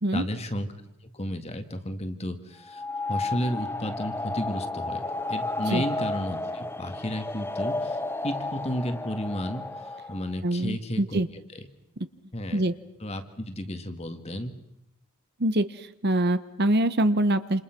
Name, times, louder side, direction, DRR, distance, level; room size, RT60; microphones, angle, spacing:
voice 1, 0.1-0.7 1.1-2.8 3.1-5.0 5.3-8.0 8.2-11.2 11.5-11.7 12.3-12.6 13.0-14.5, equal, 30° left, 8 dB, 2.0 m, -32 dB
sound 1, 2.7-10.3, left 2 dB, 10° left, 0.9 m, -32 dB
voice 2, 10.4-11.3 12.5-12.7 15.4-17.6, right 1 dB, 45° right, 12 dB, 1.1 m, -24 dB
28.5 x 28.0 x 6.1 m, 0.87 s
head